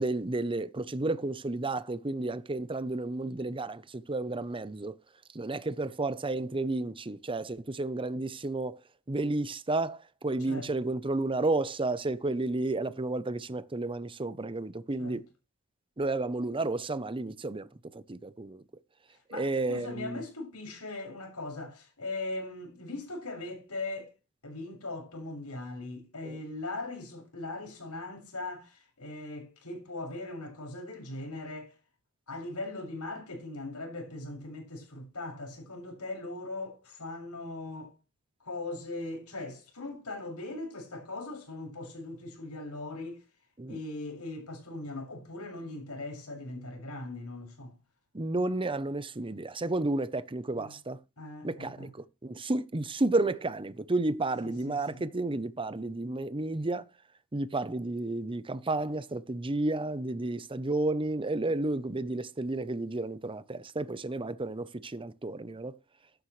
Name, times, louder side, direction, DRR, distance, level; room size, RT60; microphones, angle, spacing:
voice 1, 0.0-4.9 5.3-8.8 9.1-15.2 16.0-17.7 17.9-18.6 19.3-20.2 26.3-26.4 43.6-43.8 48.1-51.0 51.4-56.9 57.3-65.8, right 2 dB, 25° right, 0.8 m, -32 dB
voice 2, 19.3-24.1 24.4-31.7 32.3-37.9 38.4-43.2 43.7-47.7 50.5-50.7 51.2-51.9 54.4-55.0, left 2 dB, 85° left, 6.5 m, -40 dB
14.0 x 12.0 x 3.3 m
head